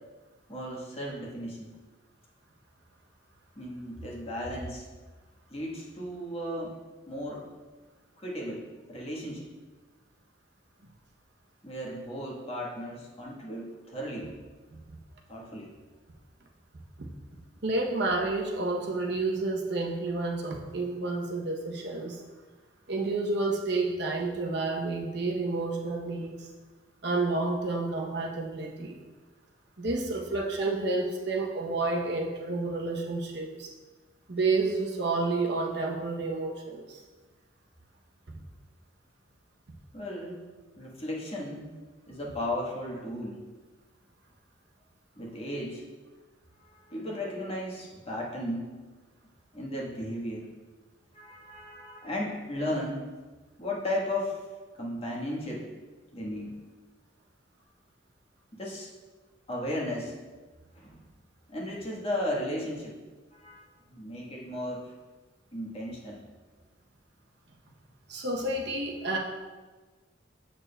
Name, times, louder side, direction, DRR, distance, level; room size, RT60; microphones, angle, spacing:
voice 1, 0.5-1.7 3.6-4.9 5.5-6.8 7.1-7.4 8.2-9.5 11.6-14.3 15.3-15.7 39.9-40.4 40.7-41.7 42.1-43.4 45.2-45.8 46.6-48.7 49.5-50.4 51.1-53.1 53.6-54.4 54.8-55.7 56.1-56.5 58.5-58.9 59.5-60.1 60.7-61.0 61.5-63.0 63.3-64.9 65.5-66.2, left 1 dB, 35° left, -3 dB, 1.3 m, -35 dB
voice 2, 17.6-22.2 22.9-26.4 27.0-29.0 29.8-33.7 34.3-37.0 68.1-69.2, right 3 dB, 65° right, 1 dB, 0.8 m, -30 dB
7.5 x 6.7 x 2.3 m, 1.3 s
head